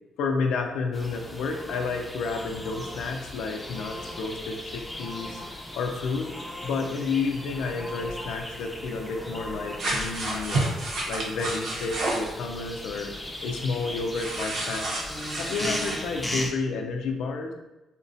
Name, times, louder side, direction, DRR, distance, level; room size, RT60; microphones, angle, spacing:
voice 1, 0.2-5.4 5.7-6.3 6.6-10.8 11.1-13.1 13.4-14.9 15.3-17.5, left 4 dB, 80° left, 4 dB, 0.4 m, -30 dB
sound 1, 0.9-16.5, left 1 dB, 10° left, 0.5 m, -38 dB
sound 2, 9.8-12.3 14.1-16.0, right 2 dB, 70° right, 0.7 m, -30 dB
3.6 x 2.1 x 2.6 m, 1.0 s
cardioid pair, 90°, 0 cm